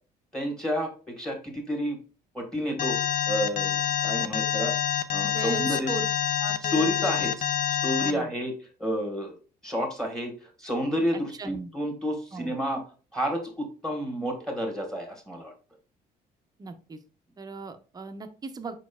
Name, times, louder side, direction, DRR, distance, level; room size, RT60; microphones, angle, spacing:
voice 1, 0.3-2.0 2.3-3.0 3.3-4.7 5.1-5.9 6.7-7.4 7.7-8.5 8.8-9.4 9.6-12.8 13.1-15.5, equal, 5° left, 3 dB, 1.3 m, -30 dB
Alarm, 2.8-8.1, left 10 dB, 55° left, 0.5 m, -27 dB
voice 2, 5.2-6.0 6.4-6.9 7.2-7.3 8.0-8.3 11.1-11.7 12.3-12.5 16.6-17.0 17.4-18.8, right 4 dB, 25° right, 8 dB, 0.6 m, -38 dB
5.1 x 4.4 x 2.3 m, 0.37 s
cardioid pair, 110°, 17 cm